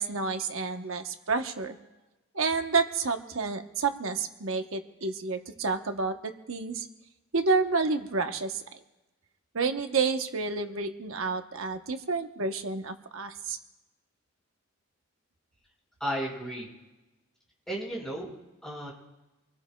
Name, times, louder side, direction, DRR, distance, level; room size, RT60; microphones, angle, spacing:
voice 1, 0.0-1.8 2.3-6.9 7.3-8.8 9.5-13.6, right 4 dB, 70° right, 6 dB, 1.0 m, -29 dB
voice 2, 16.0-16.7 17.7-18.3 18.6-18.9, equal, ahead, -4 dB, 5.2 m, -33 dB
26.0 x 19.5 x 2.3 m, 1.0 s
head